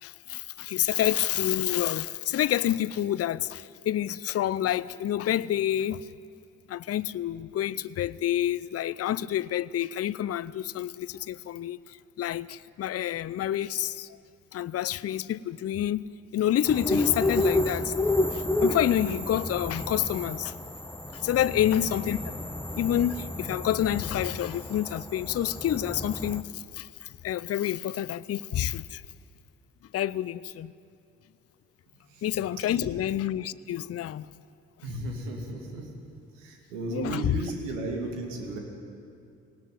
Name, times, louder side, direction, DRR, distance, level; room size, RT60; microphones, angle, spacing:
voice 1, 0.0-6.1 6.7-11.8 12.2-14.1 14.5-16.0 16.3-17.9 18.3-20.5 21.2-22.2 22.7-26.9 27.2-29.0 29.9-30.7 32.2-34.3 36.9-37.2, left 11 dB, 40° left, 0.6 m, -28 dB
sound 1, 16.7-26.4, left 1 dB, 5° left, 1.4 m, -30 dB
voice 2, 34.8-35.9 36.3-38.6, right 2 dB, 80° right, 2.6 m, -34 dB
20.0 x 18.0 x 9.4 m
hypercardioid pair, 40°, 37 cm